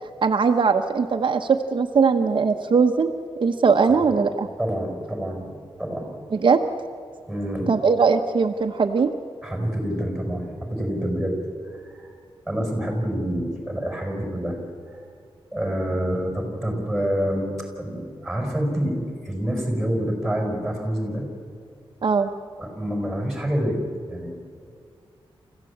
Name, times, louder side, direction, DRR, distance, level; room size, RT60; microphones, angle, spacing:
voice 1, 0.2-3.1 3.4-4.5 6.3-6.6 7.7-9.1 22.0-22.3, right 5 dB, 55° right, 4 dB, 1.0 m, -20 dB
voice 2, 3.9-4.2 4.6-5.5 5.8-6.1 7.3-7.7 9.4-11.4 11.6-12.1 12.5-14.6 14.9-15.0 15.5-21.3 22.6-24.3, equal, ahead, 2 dB, 5.6 m, -27 dB
28.5 x 15.0 x 8.6 m, 2.2 s
wide cardioid pair, 150°, 10 cm